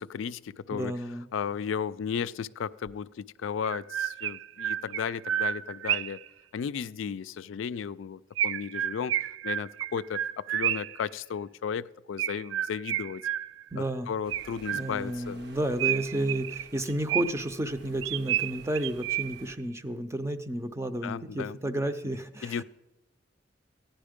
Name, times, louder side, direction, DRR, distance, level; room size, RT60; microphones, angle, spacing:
voice 1, 0.0-0.9 1.3-6.2 6.5-9.1 9.4-13.2 13.8-15.4 21.0-21.6 22.4-22.6, left 7 dB, 85° left, 14 dB, 0.4 m, -34 dB
voice 2, 0.7-1.3 13.7-14.1 14.7-22.6, right 1 dB, 15° right, 9 dB, 0.6 m, -32 dB
Chirp tweet, 2.9-3.0 3.6-6.3 8.4-11.0 12.2-13.8 14.3-15.2 15.8-17.5 18.0-19.5, right 11 dB, 75° right, 0.3 m, -31 dB
sound 1, 14.2-19.6, right 2 dB, 60° right, 0.9 m, -52 dB
15.0 x 10.5 x 5.1 m, 1.0 s
head